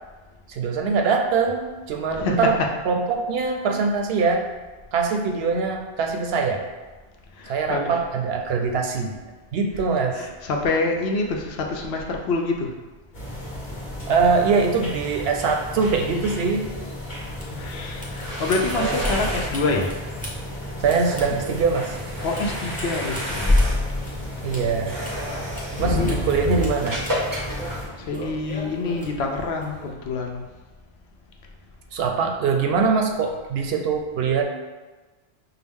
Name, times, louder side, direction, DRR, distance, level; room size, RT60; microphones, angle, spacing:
voice 1, 0.5-2.5 2.9-4.5 4.9-6.7 7.5-9.2 9.5-10.3 14.1-16.7 18.7-19.1 20.8-22.0 24.4-25.0 25.8-27.0 31.9-34.4, right 5 dB, 70° right, 3 dB, 0.7 m, -23 dB
voice 2, 2.1-2.5 7.3-7.9 10.1-12.8 17.5-19.9 22.2-24.1 25.7-26.2 28.0-30.4, left 3 dB, 75° left, 1 dB, 0.8 m, -27 dB
sound 1, 13.1-27.9, left 1 dB, 45° left, 1.1 m, -35 dB
sound 2, 17.0-29.9, left 2 dB, 10° left, 0.7 m, -30 dB
sound 3, 17.9-28.6, equal, 25° right, 0.4 m, -33 dB
5.6 x 2.1 x 3.5 m, 1.3 s
omnidirectional pair, 1.1 m